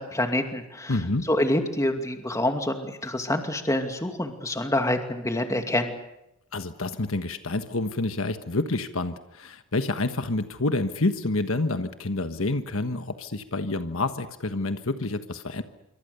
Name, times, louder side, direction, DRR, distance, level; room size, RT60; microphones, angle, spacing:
voice 1, 0.0-1.0 1.3-5.9, left 1 dB, 15° left, 5 dB, 2.4 m, -26 dB
voice 2, 0.9-1.3 6.5-15.6, left 2 dB, 65° left, 9 dB, 1.4 m, -28 dB
27.5 x 24.5 x 6.9 m, 0.85 s
head